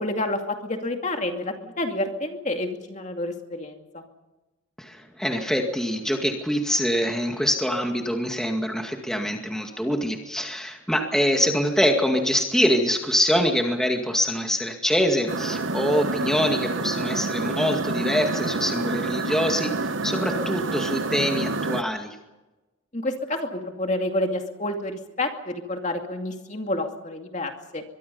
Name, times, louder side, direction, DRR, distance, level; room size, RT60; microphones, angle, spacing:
voice 1, 0.0-4.1 22.9-27.8, left 1 dB, 35° left, 4 dB, 2.5 m, -29 dB
voice 2, 4.8-22.2, equal, 5° left, 2 dB, 2.1 m, -24 dB
sound 1, 15.3-21.8, right 3 dB, 70° right, 1.1 m, -28 dB
23.5 x 23.5 x 5.5 m, 1.1 s
head